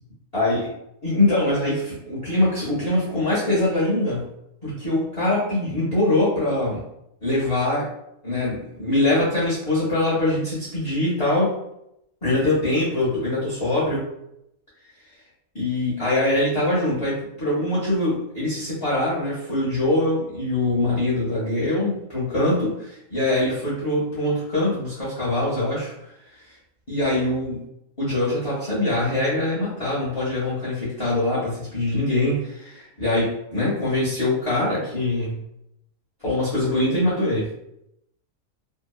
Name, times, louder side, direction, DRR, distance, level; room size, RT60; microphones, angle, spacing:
voice 1, 0.3-0.7 1.0-4.3 4.6-6.8 7.2-7.9 8.2-11.5 12.2-14.1 15.5-25.9 26.9-27.6 28.0-35.4 36.2-37.5, left 1 dB, 30° left, -9 dB, 0.7 m, -23 dB
2.7 x 2.1 x 2.3 m, 0.80 s
omnidirectional pair, 1.5 m